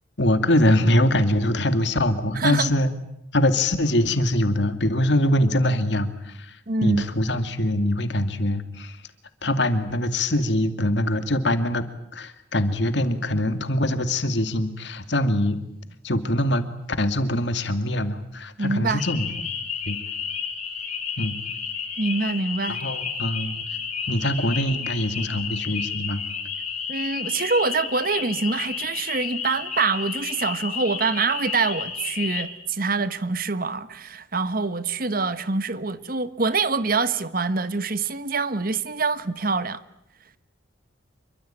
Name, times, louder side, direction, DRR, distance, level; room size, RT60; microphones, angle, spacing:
voice 1, 0.2-2.9 3.3-9.0 9.4-11.8 12.1-15.6 16.0-16.7 17.0-19.3 19.9-20.0 21.2-21.4 22.7-23.6 24.1-26.2, left 1 dB, 65° left, 2.4 m, -23 dB
voice 2, 2.3-2.7 6.7-7.0 18.6-19.0 22.0-22.8 26.9-39.8, right 4 dB, 50° right, 1.3 m, -25 dB
sound 1, 19.0-32.4, left 6 dB, 35° left, 5.2 m, -31 dB
27.5 x 24.0 x 9.0 m
head